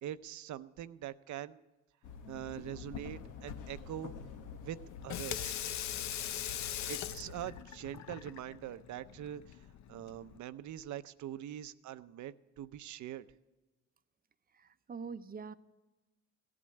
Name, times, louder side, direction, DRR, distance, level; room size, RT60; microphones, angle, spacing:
voice 1, 0.0-1.6 2.3-4.1 4.6-4.8 5.0-5.5 6.9-9.6 9.9-13.3, right 12 dB, 70° right, 14 dB, 0.7 m, -43 dB
sound 1, 2.0-7.6, left 6 dB, 85° left, 1.1 m, -48 dB
Water tap faucet / Sink (filling or washing), 4.9-10.4, left 10 dB, 65° left, 0.7 m, -41 dB
voice 2, 14.5-15.5, right 5 dB, 30° right, 12 dB, 0.7 m, -44 dB
16.5 x 8.6 x 8.9 m, 1.1 s
cardioid pair, 90°, 30 cm